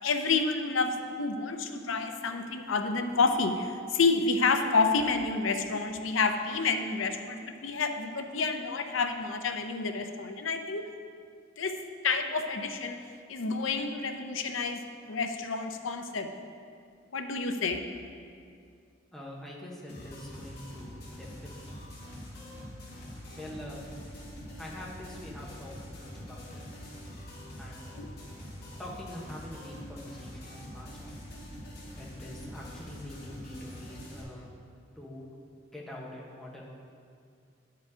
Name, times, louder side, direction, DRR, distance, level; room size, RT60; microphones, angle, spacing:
voice 1, 0.0-10.8 11.6-11.7 12.0-13.0 13.3-16.3 17.1-17.8 28.0-28.1, left 4 dB, 85° left, 6 dB, 0.6 m, -29 dB
voice 2, 19.1-21.9 23.3-23.8 24.6-26.6 27.6-28.0 28.8-31.1 32.0-34.5 35.0-36.6, left 1 dB, ahead, -4 dB, 1.1 m, -44 dB
sound 1, 19.9-34.2, equal, 50° left, 2.0 m, -44 dB
10.5 x 4.7 x 5.0 m, 2.3 s
head